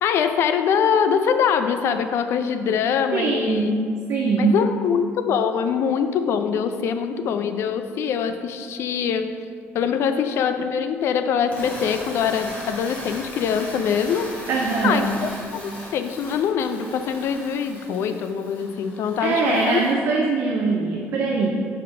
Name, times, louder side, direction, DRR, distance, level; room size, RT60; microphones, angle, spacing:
voice 1, 0.0-3.7 4.4-9.3 9.7-14.3 14.8-19.8, left 7 dB, 60° left, 9 dB, 0.4 m, -23 dB
voice 2, 3.1-3.7 4.1-4.6 14.5-15.1 19.2-21.5, right 4 dB, 60° right, -1 dB, 0.6 m, -22 dB
sound 1, 11.4-19.9, left 1 dB, 30° left, 1.2 m, -38 dB
5.7 x 3.3 x 5.1 m, 2.2 s
cardioid pair, 150°, 5 cm